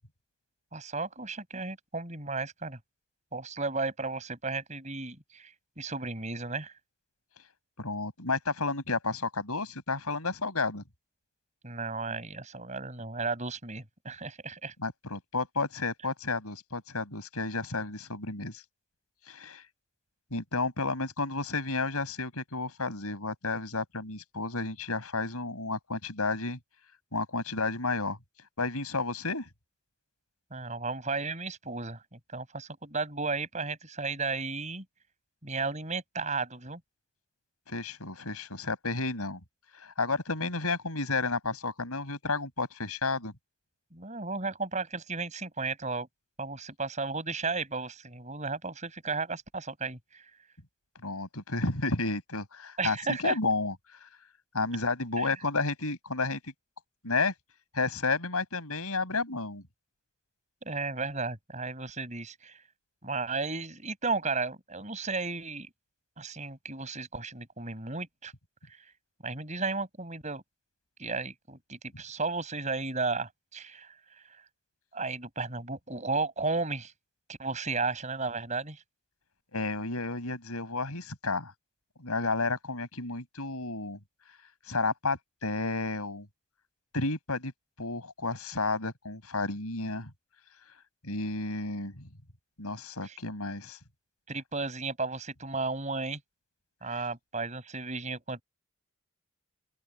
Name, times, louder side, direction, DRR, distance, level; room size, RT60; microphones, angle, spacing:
voice 1, 0.7-2.8 3.3-6.7 11.6-14.7 30.5-34.8 35.4-36.8 43.9-46.1 46.4-50.3 52.8-53.4 55.2-55.3 60.6-62.6 63.0-65.7 66.2-68.3 68.7-68.9 69.2-70.4 71.0-73.9 74.9-76.9 77.3-78.8 93.0-93.2 94.3-96.2 96.8-98.4, right 3 dB, 30° right, 6.7 m, -34 dB
voice 2, 7.8-10.8 14.8-18.6 19.3-19.6 20.3-26.6 27.1-28.2 28.6-29.5 37.7-39.4 39.8-43.3 51.0-53.7 54.5-56.4 57.0-57.3 57.7-59.6 79.5-81.5 82.0-84.0 84.7-86.3 86.9-87.5 87.8-90.1 91.0-92.1 92.6-93.8 96.9-97.0, left 3 dB, 90° left, 6.0 m, -31 dB
open air
head